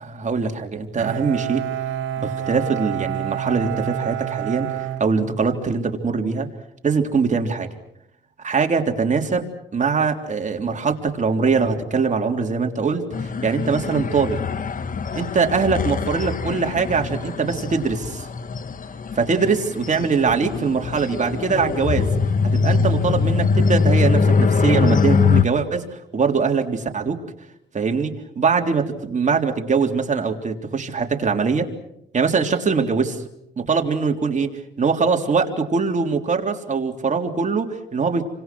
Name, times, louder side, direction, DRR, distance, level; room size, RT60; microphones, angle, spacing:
voice 1, 0.0-1.7 2.2-6.5 6.8-7.7 8.4-14.4 15.1-18.3 19.2-22.1 22.4-25.9 26.1-27.2 27.7-31.7 32.1-33.2 33.6-38.3, right 5 dB, 40° right, 4 dB, 3.6 m, -22 dB
Bowed string instrument, 1.0-5.8, right 10 dB, 85° right, 2.2 m, -28 dB
sound 1, 13.1-25.4, left 5 dB, 45° left, 1.4 m, -22 dB
29.0 x 26.0 x 6.2 m, 0.78 s
cardioid pair, 90°, 20 cm